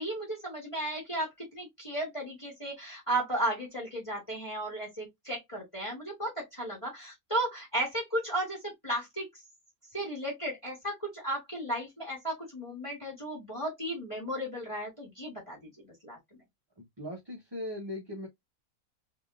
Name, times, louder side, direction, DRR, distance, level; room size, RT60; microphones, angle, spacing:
voice 1, 0.0-9.3 9.9-15.6 16.0-16.2, right 1 dB, 20° left, 1.6 m, -34 dB
voice 2, 17.0-18.3, left 1 dB, 20° right, 1.0 m, -38 dB
3.6 x 3.4 x 2.4 m
omnidirectional pair, 1.6 m